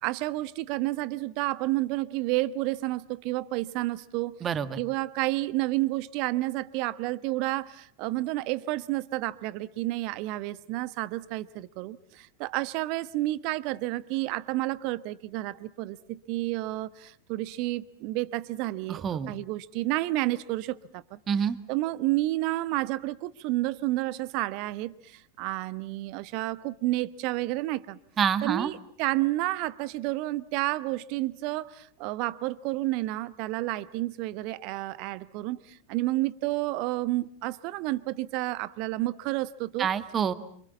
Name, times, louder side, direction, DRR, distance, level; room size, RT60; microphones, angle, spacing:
voice 1, 0.0-4.4 4.8-21.2 21.7-28.0 28.4-39.9, right 18 dB, 45° right, 17 dB, 1.1 m, -30 dB
voice 2, 4.4-4.8 18.9-19.3 21.3-21.6 28.2-28.7 39.8-40.3, right 7 dB, 25° right, 13 dB, 1.7 m, -27 dB
28.0 x 26.0 x 7.2 m, 0.62 s
figure-of-eight pair, 90°, 0 cm